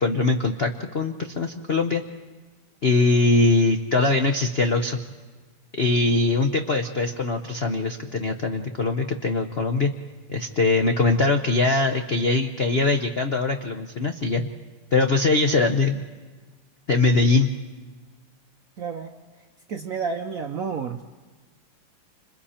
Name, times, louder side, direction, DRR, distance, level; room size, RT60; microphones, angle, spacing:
voice 1, 0.0-2.0 2.8-5.0 5.8-9.9 10.3-14.5 14.9-16.0 16.9-17.5, left 3 dB, 60° left, 5 dB, 0.6 m, -22 dB
voice 2, 18.8-19.2 19.7-21.0, right 5 dB, 65° right, 5 dB, 0.9 m, -30 dB
30.0 x 26.5 x 4.4 m, 1.3 s
omnidirectional pair, 2.4 m